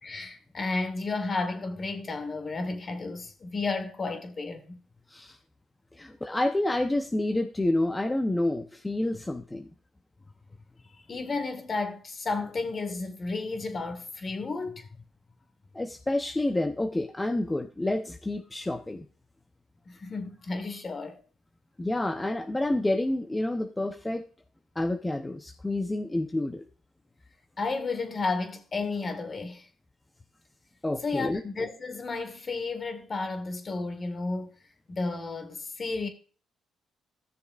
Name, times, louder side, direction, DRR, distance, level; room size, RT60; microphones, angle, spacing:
voice 1, 0.0-4.8 10.9-14.9 19.9-21.2 27.6-29.7 31.0-34.5 34.9-36.1, left 3 dB, 40° left, 1.8 m, -32 dB
voice 2, 5.9-9.7 15.7-19.0 21.8-24.3 24.8-26.6 30.8-31.4, left 1 dB, 15° left, 0.8 m, -29 dB
15.0 x 6.6 x 2.5 m
cardioid pair, 90°, 0 cm